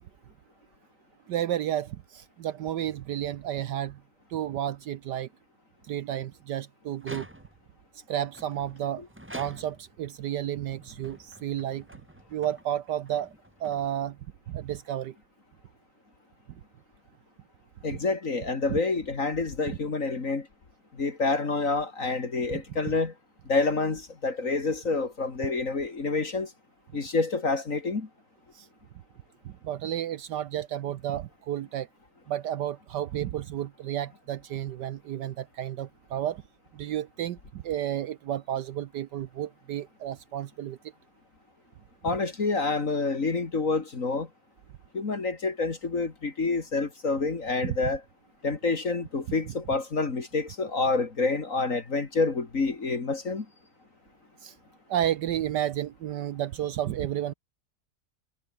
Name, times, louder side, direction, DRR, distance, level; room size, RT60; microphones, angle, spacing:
voice 1, 1.3-4.0 4.3-5.3 5.9-7.3 8.1-9.0 9.3-11.9 12.3-13.3 13.6-14.2 14.5-15.1 17.9-18.0 18.7-18.8 19.7-19.8 22.5-22.6 28.5-28.7 29.4-31.9 32.3-36.4 36.7-40.8 42.1-42.2 47.6-47.8 54.4-54.5 54.9-57.3, right 11 dB, 70° right, 1.3 m, -32 dB
sound 1, 6.9-7.7 8.3-10.0 10.7-14.2, right 1 dB, 5° right, 3.1 m, -47 dB
voice 2, 17.8-20.5 20.9-23.1 23.5-26.5 26.9-28.1 42.0-44.3 44.9-48.0 48.4-53.5, left 3 dB, 45° left, 2.6 m, -28 dB
omnidirectional pair, 2.0 m